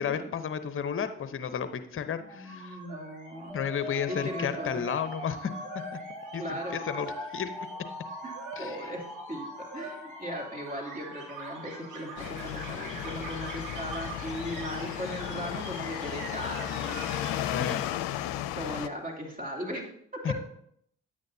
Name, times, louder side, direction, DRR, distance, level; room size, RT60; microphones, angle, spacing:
voice 1, 0.0-2.8 3.5-5.5 6.3-7.5 8.6-8.8 17.5-17.8 20.2-20.3, left 7 dB, 35° left, 10 dB, 0.9 m, -32 dB
sound 1, 2.2-18.7, right 3 dB, 60° right, 2.3 m, -44 dB
voice 2, 2.3-3.5 4.1-4.8 6.4-6.8 8.2-17.1 18.5-19.9 20.1-20.3, equal, 25° right, 0 dB, 2.9 m, -38 dB
sound 2, 3.5-13.5, left 1 dB, ahead, 2.2 m, -43 dB
sound 3, 12.2-18.9, left 13 dB, 80° left, 0.5 m, -34 dB
10.0 x 8.5 x 2.7 m, 0.69 s
hypercardioid pair, 55°, 34 cm